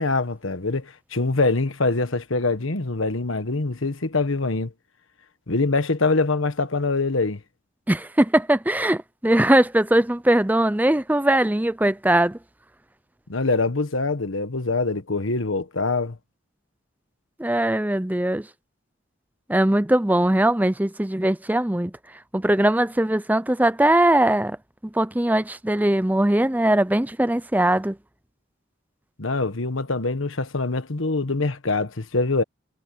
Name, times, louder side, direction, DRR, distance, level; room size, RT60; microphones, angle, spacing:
voice 1, 0.0-4.7 5.5-7.4 13.3-16.2 29.2-32.4, left 3 dB, 85° left, 1.5 m, -24 dB
voice 2, 7.9-12.4 17.4-18.5 19.5-21.9 22.3-24.6 25.0-28.0, right 1 dB, 10° right, 0.6 m, -20 dB
head